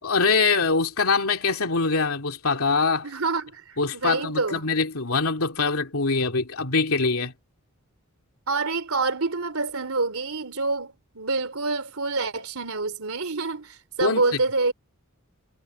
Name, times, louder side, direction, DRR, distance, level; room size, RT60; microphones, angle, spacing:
voice 1, 0.0-3.1 3.8-7.3 14.0-14.2, left 4 dB, 85° left, 2.7 m, -23 dB
voice 2, 3.0-4.6 8.5-14.7, right 3 dB, 90° right, 3.0 m, -27 dB
head